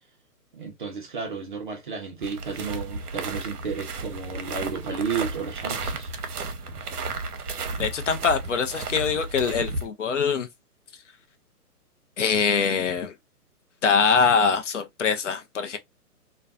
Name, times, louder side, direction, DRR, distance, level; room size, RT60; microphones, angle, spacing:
voice 1, 0.5-6.1, right 5 dB, 35° right, 0.6 m, -32 dB
sound 1, 2.2-9.9, right 3 dB, 75° right, 0.7 m, -33 dB
voice 2, 7.8-10.5 12.2-13.1 13.8-15.8, left 5 dB, 50° left, 0.6 m, -23 dB
2.5 x 2.2 x 2.3 m
hypercardioid pair, 150°, 46 cm